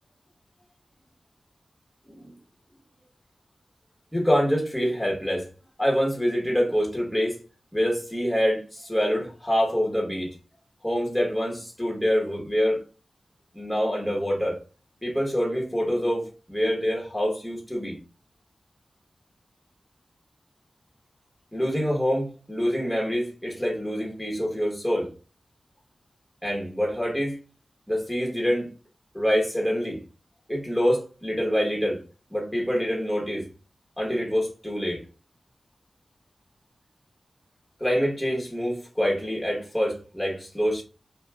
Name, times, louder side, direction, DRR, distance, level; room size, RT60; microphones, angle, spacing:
voice 1, 4.1-5.5 5.8-7.4 7.7-10.3 10.8-12.8 13.5-14.6 15.0-18.0 21.5-25.1 26.4-27.4 27.9-28.7 29.1-30.0 30.5-32.0 32.3-33.5 34.0-35.0 37.8-40.8, equal, ahead, -2 dB, 0.9 m, -26 dB
2.5 x 2.2 x 3.1 m, 0.34 s
wide cardioid pair, 95°, 0 cm